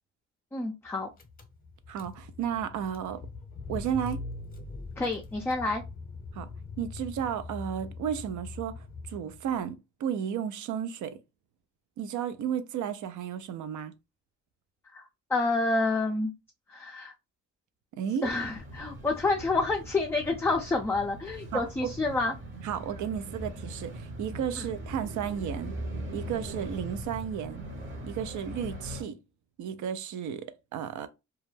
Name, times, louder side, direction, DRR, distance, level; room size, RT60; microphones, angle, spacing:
voice 1, 0.5-1.1 5.0-5.8 14.9-15.0 15.3-16.3 16.7-17.1 18.2-22.3 24.6-24.7, left 3 dB, 10° left, 0.3 m, -28 dB
Car / Engine, 0.9-1.0 1.2-9.5, left 3 dB, 30° left, 0.7 m, -42 dB
voice 2, 1.9-3.2 3.7-4.2 6.3-6.5 6.8-11.2 12.0-13.9 18.0-18.3 21.5-21.9 22.6-25.8 26.1-27.7 28.0-29.2 29.6-31.1, right 8 dB, 75° right, 0.5 m, -33 dB
sound 1, 18.2-29.0, right 1 dB, 40° right, 0.9 m, -40 dB
2.3 x 2.1 x 3.1 m
cardioid pair, 90°, 30 cm